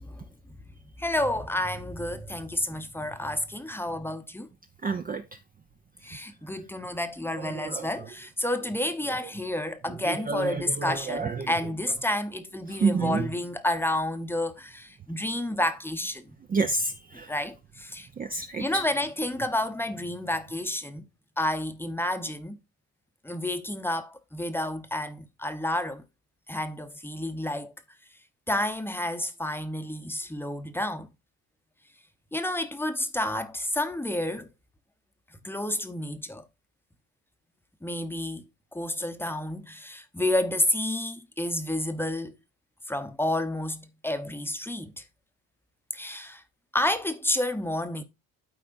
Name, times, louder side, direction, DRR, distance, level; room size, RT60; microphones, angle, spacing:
voice 1, 1.0-4.5 6.0-16.4 17.1-18.1 18.6-21.0 21.4-22.6 23.2-26.0 26.5-27.7 28.5-31.1 32.3-34.5 35.4-36.5 37.8-38.4 38.7-42.3 42.9-45.0 45.9-46.4 46.7-48.0, left 1 dB, 5° left, 0.8 m, -30 dB
voice 2, 4.8-5.2 7.3-7.9 10.0-11.5 12.7-13.3 16.5-17.3 18.2-18.8, right 4 dB, 20° right, 0.5 m, -29 dB
12.5 x 4.3 x 2.5 m
supercardioid pair, 90°, 40 cm